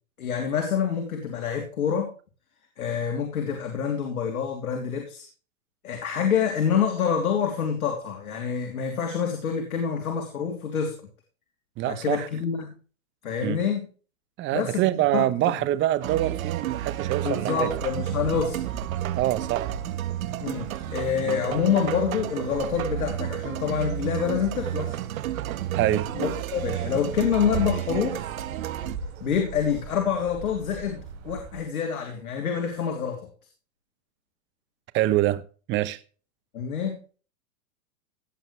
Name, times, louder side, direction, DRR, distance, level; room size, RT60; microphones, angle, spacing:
voice 1, 0.2-2.1 2.8-5.3 5.8-11.0 11.8-12.7 13.2-13.9 14.5-15.2 17.2-18.6 20.4-25.0 25.8-28.2 29.2-33.2 36.5-37.0, left 7 dB, 85° left, 3.2 m, -27 dB
voice 2, 11.8-12.3 13.4-13.6 14.4-17.7 19.1-19.7 25.8-26.1 34.9-35.4 35.7-36.0, right 15 dB, 25° right, 1.0 m, -25 dB
sound 1, 15.7-31.6, right 5 dB, 45° right, 4.7 m, -41 dB
sound 2, 16.0-29.0, right 12 dB, 75° right, 1.4 m, -31 dB
17.0 x 8.6 x 3.3 m
hypercardioid pair, 135°, 42 cm